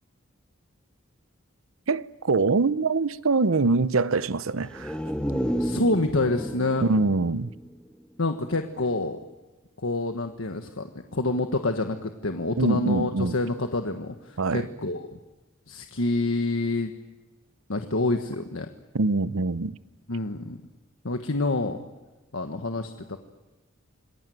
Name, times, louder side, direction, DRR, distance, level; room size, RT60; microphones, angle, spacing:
voice 1, 1.9-5.0 6.8-7.5 12.6-13.3 14.4-14.7 18.9-19.7, right 3 dB, 85° right, 0.8 m, -24 dB
sound 1, 4.6-8.3 8.7-8.8, equal, 5° left, 1.3 m, -32 dB
voice 2, 5.6-6.9 8.2-9.2 9.8-15.2 15.7-16.9 17.7-18.7 20.1-20.6 21.0-21.8 22.3-23.2, left 2 dB, 80° left, 1.4 m, -27 dB
27.0 x 21.5 x 9.3 m
head